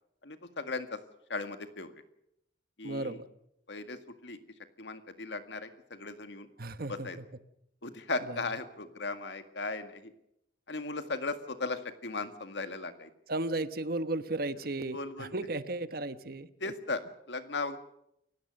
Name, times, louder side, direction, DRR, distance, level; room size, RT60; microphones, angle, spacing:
voice 1, 0.2-1.0 1.3-1.9 2.8-3.2 3.7-4.4 4.8-6.5 6.9-7.2 7.8-10.1 10.7-13.1 14.9-15.3 16.6-17.8, left 3 dB, 85° left, 8 dB, 2.0 m, -37 dB
voice 2, 2.8-3.3 6.6-7.1 8.3-8.4 13.3-16.5, right 2 dB, 60° right, 11 dB, 1.2 m, -34 dB
29.0 x 16.5 x 6.6 m, 0.78 s
head